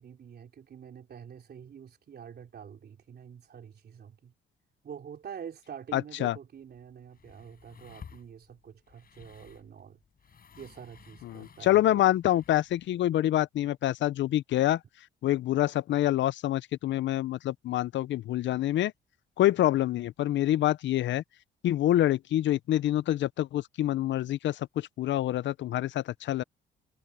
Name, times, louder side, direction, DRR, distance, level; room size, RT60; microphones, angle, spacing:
voice 1, 0.0-4.3 4.8-10.0 10.6-12.0, right 8 dB, 55° right, 3.7 m, -46 dB
voice 2, 5.9-6.4 11.2-14.8 15.2-18.9 19.4-21.2 21.6-26.4, left 13 dB, 70° left, 0.6 m, -26 dB
sound 1, 6.6-12.9, left 7 dB, 50° left, 6.6 m, -55 dB
cardioid pair, 90°, 20 cm